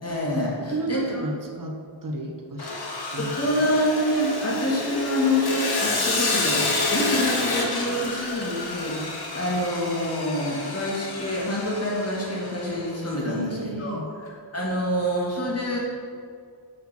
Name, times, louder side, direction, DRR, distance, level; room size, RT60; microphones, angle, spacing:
voice 1, 0.0-1.2 3.2-14.0 14.5-15.8, left 1 dB, 30° left, -4 dB, 2.1 m, -26 dB
voice 2, 0.6-3.8 8.0-8.2 13.2-14.1, right 2 dB, 45° right, 3 dB, 1.1 m, -33 dB
Sawing, 2.6-12.8, left 3 dB, 55° left, 1.3 m, -29 dB
6.6 x 5.8 x 6.0 m, 2.3 s
wide cardioid pair, 115°, 46 cm